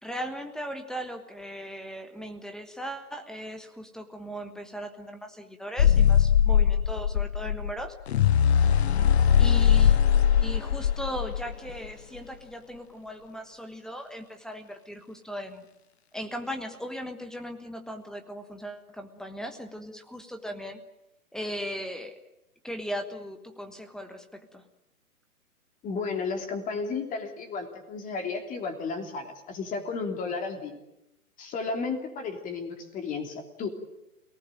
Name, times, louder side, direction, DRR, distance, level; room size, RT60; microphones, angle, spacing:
voice 1, 0.0-8.0 9.4-10.0 10.4-15.7 16.1-20.8 21.3-22.1 22.6-24.6, equal, ahead, 7 dB, 1.3 m, -38 dB
sound 1, 5.8-11.9, left 8 dB, 45° left, 1.1 m, -21 dB
voice 2, 25.8-30.8 31.4-33.7, left 4 dB, 15° left, 5 dB, 3.3 m, -33 dB
28.5 x 19.0 x 9.1 m, 0.91 s
figure-of-eight pair, 125°, 45 cm